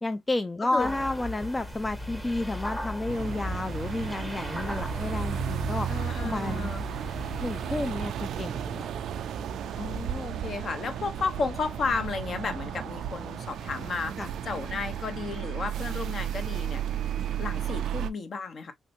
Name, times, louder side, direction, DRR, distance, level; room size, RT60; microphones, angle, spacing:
voice 1, 0.0-5.9 6.2-6.7 7.4-8.9 14.2-14.3, left 2 dB, 20° left, 0.4 m, -31 dB
voice 2, 0.6-0.9 5.9-6.8 9.8-14.1 14.4-16.8 17.4-18.7, left 4 dB, 50° left, 0.8 m, -33 dB
sound 1, 0.8-7.9, left 1 dB, 5° left, 0.8 m, -37 dB
sound 2, 3.1-18.1, right 9 dB, 75° right, 0.3 m, -34 dB
3.2 x 2.9 x 2.6 m
cardioid pair, 90°, 0 cm